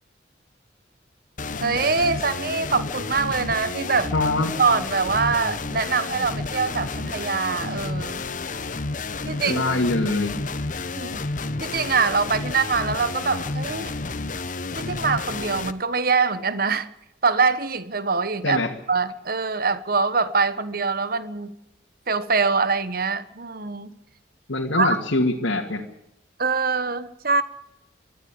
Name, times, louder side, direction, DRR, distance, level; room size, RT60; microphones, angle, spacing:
sound 1, 1.4-15.7, left 3 dB, 45° left, 1.0 m, -31 dB
voice 1, 1.6-4.1 4.6-8.2 9.3-9.6 11.0-11.2 11.6-13.9 14.8-16.9 17.2-18.6 18.9-21.5 22.1-23.9 24.8-25.0 26.4-27.4, right 4 dB, 50° right, 1.2 m, -24 dB
voice 2, 4.1-4.5 9.5-10.4 18.4-18.7 24.5-25.8, left 2 dB, 90° left, 2.5 m, -23 dB
23.5 x 13.5 x 8.7 m
head